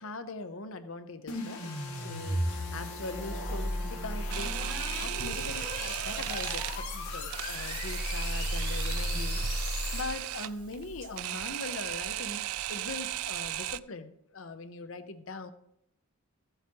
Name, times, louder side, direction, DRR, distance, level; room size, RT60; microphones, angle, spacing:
voice 1, 0.0-9.4 9.9-15.5, left 3 dB, 60° left, 10 dB, 0.8 m, -41 dB
sound 1, 1.3-10.4, left 1 dB, 85° left, 2.1 m, -34 dB
Bowed string instrument, 1.3-5.8, right 1 dB, 5° left, 0.9 m, -47 dB
Camera, 4.3-13.8, right 14 dB, 70° right, 0.3 m, -37 dB
14.5 x 8.0 x 2.9 m, 0.76 s
head